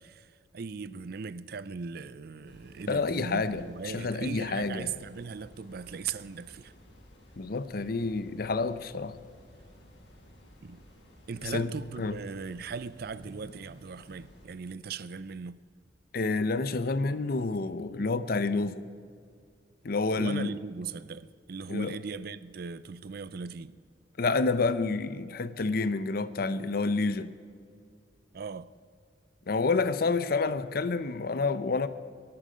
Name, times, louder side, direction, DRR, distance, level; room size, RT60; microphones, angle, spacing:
voice 1, 0.0-6.7 10.6-10.8 11.3-15.6 20.2-23.8 28.3-28.7, right 5 dB, 60° right, 0.5 m, -39 dB
sound 1, 2.4-14.5, equal, 85° left, 4.9 m, -55 dB
voice 2, 2.9-4.9 7.4-9.2 11.4-11.7 12.0-12.1 16.1-18.9 19.8-20.5 21.7-22.0 24.2-27.3 29.5-31.9, left 3 dB, 55° left, 0.7 m, -29 dB
22.5 x 11.5 x 5.2 m
head